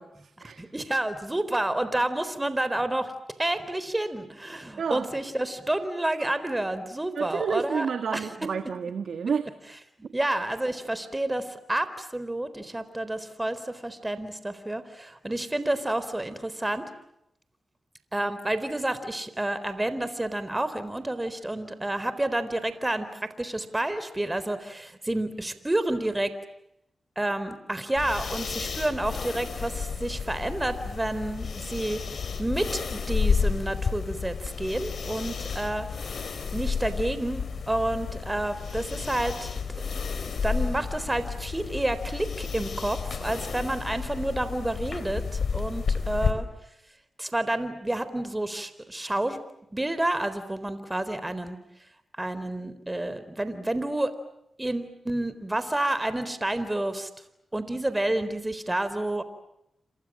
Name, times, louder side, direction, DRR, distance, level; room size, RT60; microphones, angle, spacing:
voice 1, 0.0-0.7 4.8-5.1 7.1-9.5, right 6 dB, 80° right, 9 dB, 1.6 m, -30 dB
voice 2, 0.6-3.1 3.4-7.9 8.1-8.2 10.1-16.9 18.1-26.3 27.2-32.0 32.4-36.2 36.5-39.5 40.4-46.5 47.2-49.4 49.7-51.6 52.2-54.1 54.6-57.1 57.5-59.2, right 1 dB, 20° right, 12 dB, 4.0 m, -29 dB
sound 1, 28.0-46.3, left 5 dB, 70° left, 4.0 m, -31 dB
29.5 x 26.0 x 7.5 m, 0.81 s
cardioid pair, 45°, 0 cm